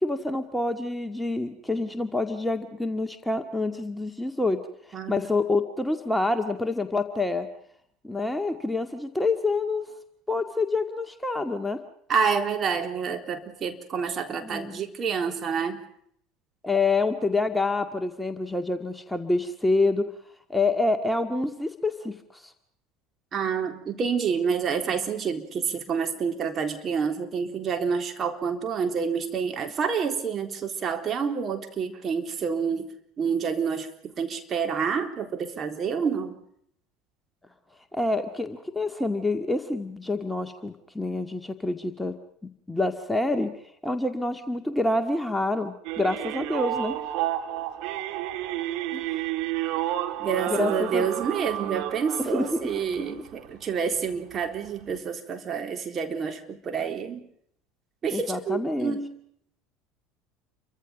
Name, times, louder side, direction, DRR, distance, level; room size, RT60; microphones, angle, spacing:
voice 1, 0.0-4.6 4.9-7.5 8.0-9.9 10.3-11.8 14.4-14.8 16.6-20.0 20.5-22.5 37.9-42.2 42.7-43.5 43.8-47.0 48.9-49.0 50.5-51.1 52.3-52.6 58.1-59.0, left 2 dB, 5° left, 6 dB, 2.0 m, -27 dB
voice 2, 4.9-5.2 12.1-15.8 23.3-32.9 33.2-36.4 50.2-57.2 58.0-59.1, right 6 dB, 35° right, 5 dB, 3.8 m, -28 dB
sound 1, 45.8-53.5 54.0-54.1 54.6-54.7 54.9-55.0, right 13 dB, 55° right, 2.1 m, -31 dB
29.0 x 24.5 x 5.2 m, 0.67 s
figure-of-eight pair, 70°, 0 cm